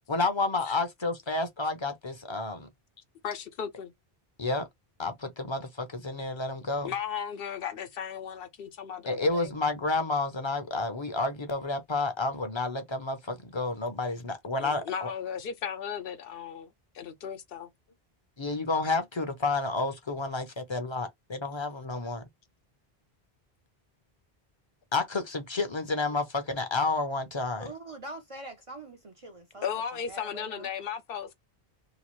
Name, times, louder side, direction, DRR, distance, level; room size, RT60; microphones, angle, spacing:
voice 1, 0.1-2.7 4.4-4.7 5.0-6.9 9.1-15.1 18.4-22.2 24.9-27.7, left 3 dB, 35° left, 0.6 m, -30 dB
voice 2, 3.2-3.9 6.8-9.5 14.6-16.7 16.9-17.7 29.6-31.3, left 8 dB, 70° left, 0.8 m, -36 dB
voice 3, 27.6-29.7 30.1-30.7, right 1 dB, 45° right, 0.5 m, -43 dB
2.9 x 2.4 x 3.0 m
omnidirectional pair, 1.0 m